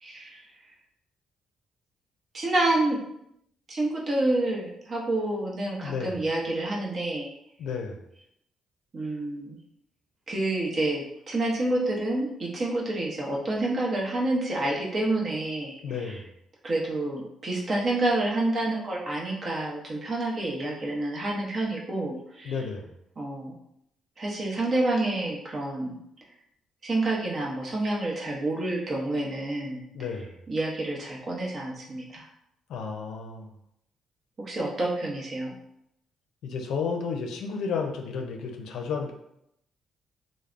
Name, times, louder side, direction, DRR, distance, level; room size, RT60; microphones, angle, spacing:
voice 1, 0.0-0.7 2.3-3.0 3.7-7.4 8.9-9.6 10.3-16.2 16.6-22.6 23.2-23.6 24.2-26.0 26.8-29.9 30.5-32.3 34.4-35.5, right 2 dB, 45° right, -2 dB, 0.8 m, -28 dB
voice 2, 5.8-6.1 7.6-8.0 15.8-16.3 22.4-22.9 29.9-30.4 32.7-33.5 36.4-39.1, left 5 dB, 80° left, 3 dB, 0.4 m, -32 dB
3.1 x 2.0 x 2.4 m, 0.78 s
cardioid pair, 90°, 0 cm